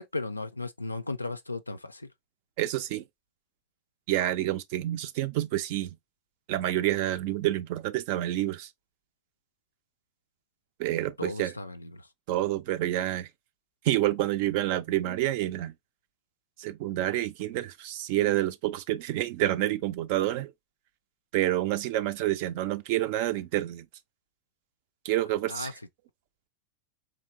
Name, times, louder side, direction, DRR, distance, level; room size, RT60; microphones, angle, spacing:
voice 1, 0.0-2.1 11.2-12.1 25.5-25.7, left 3 dB, 80° left, 0.3 m, -35 dB
voice 2, 2.6-3.0 4.1-5.9 6.5-8.7 10.8-11.5 12.3-13.3 13.8-15.7 16.6-20.5 21.3-23.9 25.0-25.7, right 14 dB, 45° right, 0.4 m, -28 dB
4.0 x 3.1 x 2.5 m
figure-of-eight pair, 90°, 0 cm